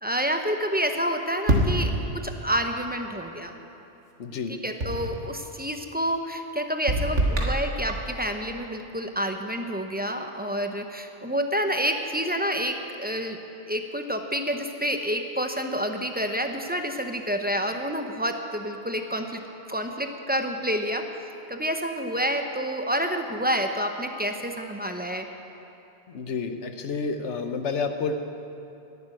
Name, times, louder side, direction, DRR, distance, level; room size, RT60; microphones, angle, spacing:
voice 1, 0.0-3.5 4.5-13.4 13.7-19.4 19.7-21.1 21.5-25.3, equal, 10° right, 5 dB, 0.7 m, -28 dB
sound 1, 1.5-2.5 4.8-5.3 6.9-8.2, right 1 dB, 85° right, 1.9 m, -25 dB
voice 2, 4.2-4.5 26.1-28.1, left 5 dB, 80° left, 7 dB, 1.2 m, -29 dB
11.0 x 11.0 x 9.1 m, 2.8 s
omnidirectional pair, 1.2 m